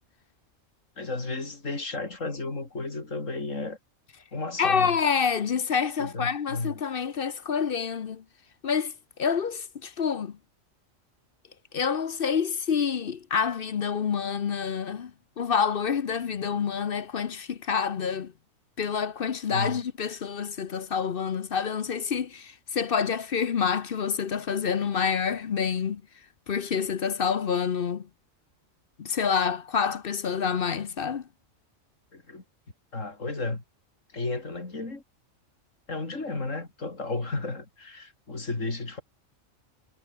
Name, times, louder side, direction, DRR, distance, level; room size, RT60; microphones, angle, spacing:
voice 1, 1.0-3.8 4.3-5.0 6.0-6.8 19.5-19.9 32.1-32.4 32.9-33.6 34.1-35.0 35.9-39.0, left 3 dB, 70° left, 4.5 m, -33 dB
voice 2, 4.6-8.2 8.6-8.9 9.2-10.3 11.7-15.1 15.4-18.3 18.8-26.0 26.5-28.1 29.0-31.2, left 6 dB, 50° left, 0.9 m, -27 dB
omnidirectional pair, 1.4 m